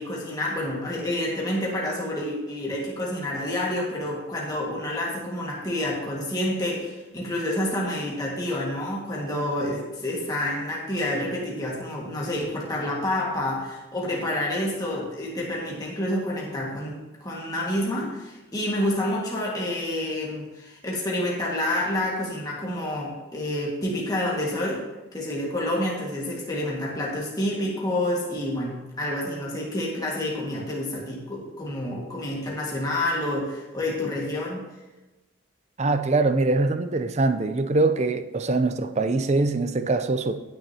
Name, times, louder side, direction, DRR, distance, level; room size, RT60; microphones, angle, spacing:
voice 1, 0.0-24.8 25.1-34.6, left 1 dB, 20° left, -4 dB, 1.8 m, -28 dB
voice 2, 35.8-40.3, right 3 dB, 35° right, 9 dB, 0.5 m, -23 dB
18.5 x 6.4 x 2.9 m, 1.1 s
head